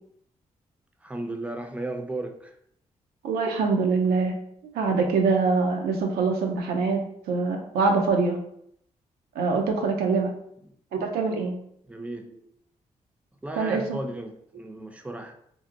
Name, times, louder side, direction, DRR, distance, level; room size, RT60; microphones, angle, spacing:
voice 1, 1.0-2.6 11.8-12.2 13.4-15.3, right 2 dB, 10° right, 5 dB, 0.5 m, -35 dB
voice 2, 3.2-4.3 4.7-8.4 9.4-10.3 10.9-11.5 13.6-14.0, right 4 dB, 80° right, 3 dB, 0.4 m, -24 dB
2.6 x 2.0 x 2.5 m, 0.70 s
supercardioid pair, 45°, 16 cm